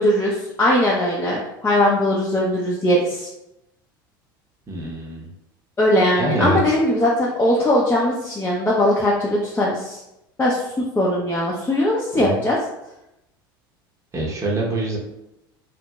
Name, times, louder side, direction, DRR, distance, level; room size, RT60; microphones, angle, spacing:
voice 1, 0.0-3.3 5.8-10.0 10.4-10.6 11.0-12.6, left 1 dB, 20° left, -5 dB, 0.6 m, -20 dB
voice 2, 4.7-5.3 6.1-6.7 12.1-12.3 14.1-15.0, right 1 dB, 25° right, -3 dB, 0.8 m, -24 dB
2.8 x 2.8 x 2.2 m, 0.89 s
hypercardioid pair, 80°, 12 cm